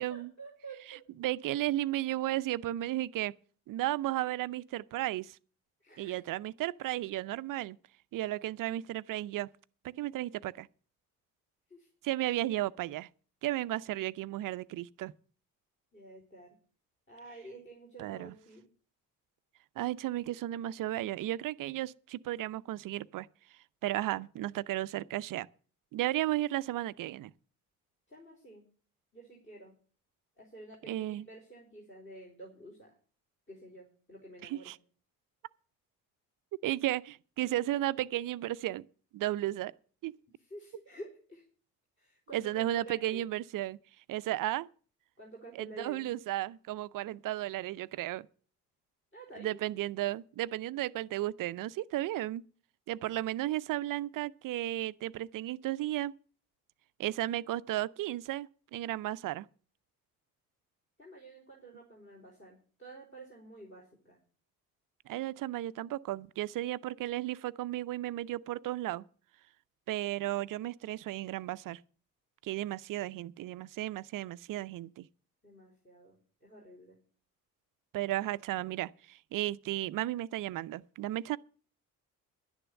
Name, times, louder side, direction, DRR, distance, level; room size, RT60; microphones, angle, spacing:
voice 1, 0.0-1.0 5.8-6.2 11.7-11.9 15.9-16.6 17.1-18.6 28.1-28.6 29.1-29.7 30.4-32.9 33.5-34.7 40.4-41.4 42.0-43.3 45.2-46.1 49.1-49.6 61.0-64.2 75.4-77.0, right 2 dB, 25° left, 4.6 m, -50 dB
voice 2, 1.2-3.3 3.7-5.4 6.0-7.8 8.1-9.5 9.8-10.7 12.0-13.1 13.4-15.1 18.0-18.3 19.8-23.3 23.8-25.5 25.9-27.3 30.9-31.2 34.4-34.8 36.6-38.9 39.1-39.7 40.0-40.1 42.3-43.8 44.1-44.7 45.6-48.3 49.4-52.4 52.9-56.1 57.0-59.5 65.1-69.0 69.9-71.8 72.4-75.1 77.9-81.4, right 15 dB, 45° right, 0.6 m, -34 dB
11.5 x 9.9 x 6.6 m
figure-of-eight pair, 45°, 45 cm